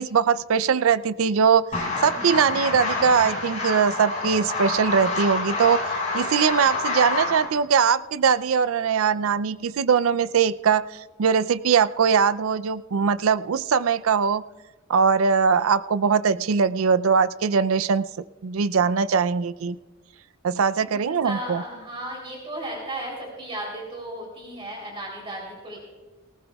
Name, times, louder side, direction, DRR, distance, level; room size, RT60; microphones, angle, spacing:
voice 1, 0.0-1.7 2.0-14.4 14.9-18.1 18.4-19.8 20.4-21.6, right 6 dB, 80° right, 16 dB, 0.4 m, -21 dB
sound 1, 1.7-7.5, left 3 dB, 35° left, 5.6 m, -27 dB
voice 2, 20.8-25.8, right 1 dB, 25° right, -2 dB, 3.3 m, -35 dB
19.0 x 19.0 x 2.3 m, 1.3 s
head